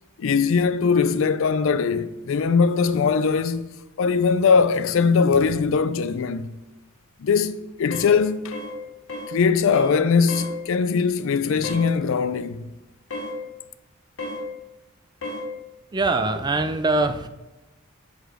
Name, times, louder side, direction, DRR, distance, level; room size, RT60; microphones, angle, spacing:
voice 1, 0.2-3.7 4.0-6.5 7.2-8.5 9.3-12.6, left 5 dB, 65° left, 0.4 m, -21 dB
sound 1, 7.9-8.1 8.5-8.8 9.1-9.3 9.7-10.0 10.3-10.5 11.6-11.9 13.1-13.4 14.2-14.4 15.2-15.5, left 1 dB, 80° left, 1.7 m, -32 dB
voice 2, 15.9-17.3, right 2 dB, 20° right, 0.4 m, -22 dB
7.9 x 4.0 x 4.8 m
head